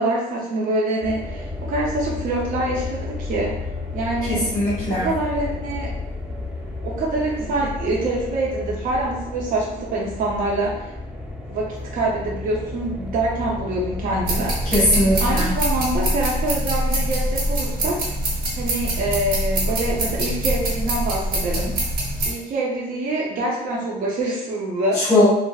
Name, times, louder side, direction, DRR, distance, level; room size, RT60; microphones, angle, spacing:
voice 1, 0.0-3.6 3.9-4.4 4.9-6.0 6.8-10.9 11.5-14.6 15.2-18.1 18.5-21.7 22.2-25.0, right 2 dB, 50° right, -3 dB, 0.6 m, -25 dB
sound 1, 1.0-15.5, left 3 dB, 5° right, 0.5 m, -32 dB
voice 2, 4.3-5.1 14.7-15.5 25.0-25.2, left 1 dB, 15° left, -8 dB, 1.2 m, -19 dB
sound 2, 14.2-22.3, right 1 dB, 70° right, 1.0 m, -24 dB
3.9 x 2.1 x 2.4 m, 0.93 s
cardioid pair, 110°, 17 cm